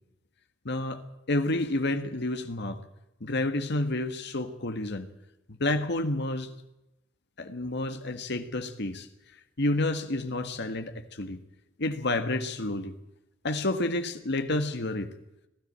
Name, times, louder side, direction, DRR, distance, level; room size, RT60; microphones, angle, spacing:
voice 1, 0.6-2.8 3.2-5.1 5.5-6.5 7.4-9.1 9.6-11.4 11.8-12.9 13.4-15.1, left 2 dB, 60° left, 8 dB, 1.6 m, -30 dB
19.5 x 13.5 x 9.9 m, 0.89 s
head